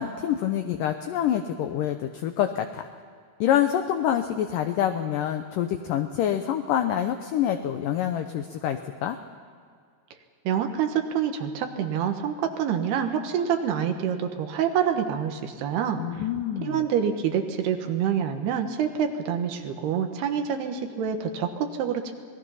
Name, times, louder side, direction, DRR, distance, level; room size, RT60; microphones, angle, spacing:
voice 1, 0.0-2.8 3.4-9.2 16.0-16.8, left 10 dB, 75° left, 6 dB, 2.0 m, -26 dB
voice 2, 10.5-16.0 16.6-22.1, right 8 dB, 75° right, 6 dB, 3.2 m, -27 dB
27.0 x 19.5 x 5.7 m, 2.1 s
omnidirectional pair, 4.8 m